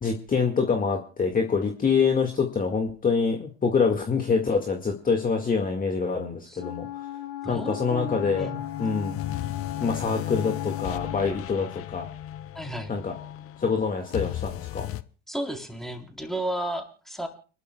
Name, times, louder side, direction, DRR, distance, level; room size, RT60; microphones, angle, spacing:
voice 1, 0.0-6.9 7.5-8.5 8.8-9.2 9.8-12.1 12.9-13.1 13.6-14.9, left 5 dB, 25° left, 3 dB, 2.0 m, -25 dB
Wind instrument woodwind instrument, 6.6-11.4, left 12 dB, 80° left, 3.3 m, -37 dB
voice 2, 7.4-8.7 12.5-12.9 15.3-17.3, right 1 dB, ahead, 2 dB, 3.8 m, -33 dB
sound 1, 7.9-15.0, left 13 dB, 45° left, 0.8 m, -35 dB
30.0 x 12.0 x 2.3 m, 0.39 s
hypercardioid pair, 80°, 33 cm